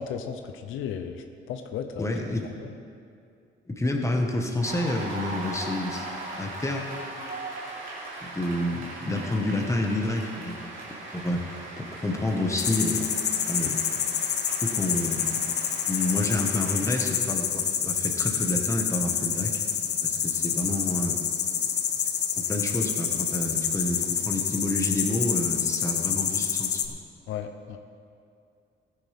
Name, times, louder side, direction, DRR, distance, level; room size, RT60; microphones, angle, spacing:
voice 1, 0.0-2.1 2.6-2.7 27.3-27.8, left 7 dB, 85° left, 7 dB, 0.7 m, -35 dB
voice 2, 2.0-2.5 3.7-6.8 8.2-10.7 11.1-13.1 13.5-13.8 14.6-15.4 15.9-19.5 20.0-21.2 22.3-27.0, left 1 dB, 15° left, 1 dB, 1.5 m, -29 dB
Cheering / Applause, 4.6-17.1, right 2 dB, 80° right, 3.1 m, -39 dB
sound 1, 12.6-26.9, left 8 dB, 60° left, 0.8 m, -28 dB
14.5 x 9.8 x 3.6 m, 2.4 s
cardioid pair, 90°, 20 cm